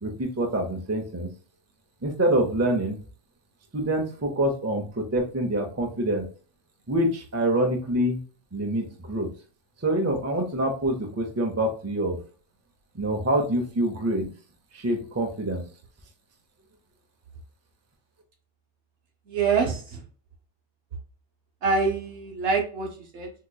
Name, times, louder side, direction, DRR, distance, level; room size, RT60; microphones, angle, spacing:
voice 1, 0.0-1.3 2.0-3.0 3.7-6.2 6.9-8.2 8.5-9.3 9.8-12.2 12.9-14.3 14.7-15.6, right 1 dB, 20° right, 2 dB, 0.4 m, -26 dB
voice 2, 19.3-20.0 21.6-23.3, right 4 dB, 65° right, 3 dB, 1.1 m, -25 dB
3.7 x 2.9 x 2.2 m, 0.38 s
omnidirectional pair, 1.3 m